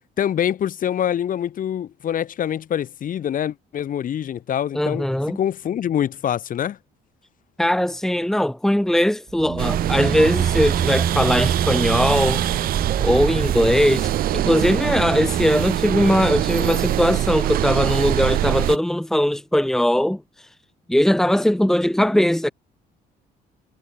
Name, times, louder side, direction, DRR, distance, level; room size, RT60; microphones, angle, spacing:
voice 1, 0.2-5.1 5.4-6.8, left 10 dB, 55° left, 5.7 m, -25 dB
voice 2, 4.7-5.4 7.6-12.5 13.0-20.2 20.9-22.5, left 1 dB, ahead, 1.8 m, -20 dB
sound 1, 9.3-17.9, right 7 dB, 40° right, 6.8 m, -28 dB
sound 2, 9.6-18.8, right 14 dB, 60° right, 0.6 m, -24 dB
cardioid pair, 110°, 17 cm